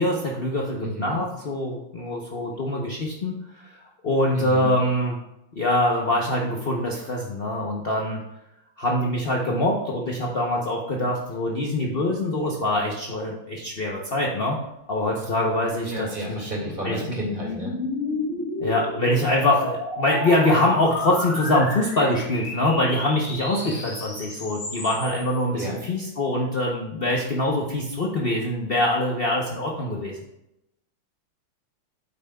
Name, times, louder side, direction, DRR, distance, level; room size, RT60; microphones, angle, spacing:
voice 1, 0.0-5.2 5.6-8.2 8.8-14.6 14.9-16.5 16.8-17.2 18.6-30.2, left 1 dB, 70° left, -2 dB, 0.5 m, -24 dB
voice 2, 0.8-1.2 4.3-4.7 15.8-17.7 23.6-23.9 25.5-25.8, equal, 25° right, -2 dB, 2.0 m, -31 dB
sound 1, 16.1-25.4, left 3 dB, 40° left, 1.5 m, -33 dB
9.0 x 8.2 x 2.3 m, 0.86 s
omnidirectional pair, 2.3 m